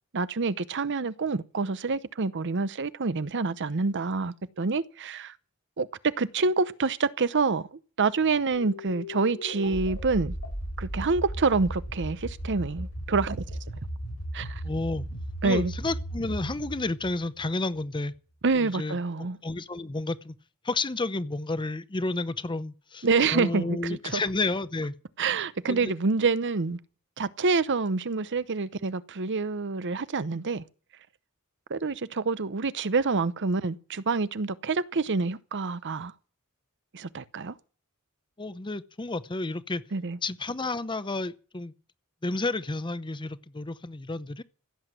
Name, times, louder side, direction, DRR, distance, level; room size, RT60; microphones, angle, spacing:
voice 1, 0.1-5.3 5.8-10.3 10.8-13.6 14.3-14.6 15.4-15.7 18.4-19.4 23.0-24.2 25.2-26.8 27.2-30.6 31.7-36.1 36.9-37.5 39.9-40.2, right 4 dB, 55° right, 0.8 m, -27 dB
sound 1, 8.5-17.9, equal, 85° left, 6.5 m, -36 dB
voice 2, 14.6-15.0 15.4-18.1 18.6-19.0 19.4-20.3 20.6-23.1 23.3-24.9 25.7-25.9 38.4-39.8 40.2-41.7 42.2-44.4, left 2 dB, 20° left, 0.7 m, -31 dB
15.5 x 8.0 x 9.0 m
head